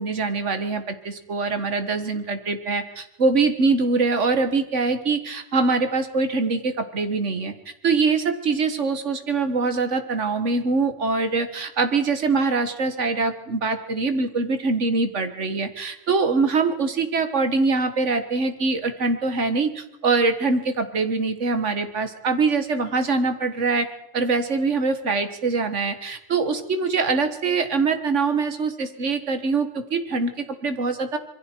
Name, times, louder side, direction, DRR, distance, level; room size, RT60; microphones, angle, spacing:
voice 1, 0.0-7.5 7.8-23.9 24.1-31.2, right 4 dB, 75° right, 8 dB, 1.8 m, -23 dB
26.0 x 22.5 x 4.6 m, 0.81 s
omnidirectional pair, 1.3 m